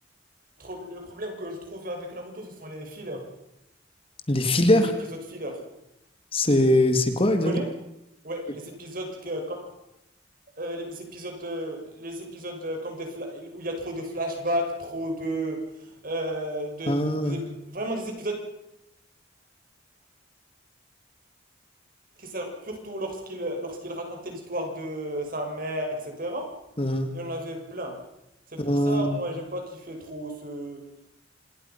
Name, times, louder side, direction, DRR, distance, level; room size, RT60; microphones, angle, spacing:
voice 1, 0.6-3.3 5.1-5.6 7.4-7.7 8.2-9.7 10.6-18.4 22.2-26.5 27.1-28.0 28.5-30.8, right 1 dB, 50° right, 3 dB, 6.3 m, -33 dB
voice 2, 4.3-4.9 6.3-7.6 16.9-17.4 26.8-27.1 28.6-29.2, left 1 dB, 30° left, 7 dB, 2.2 m, -22 dB
27.0 x 21.0 x 5.9 m, 0.88 s
head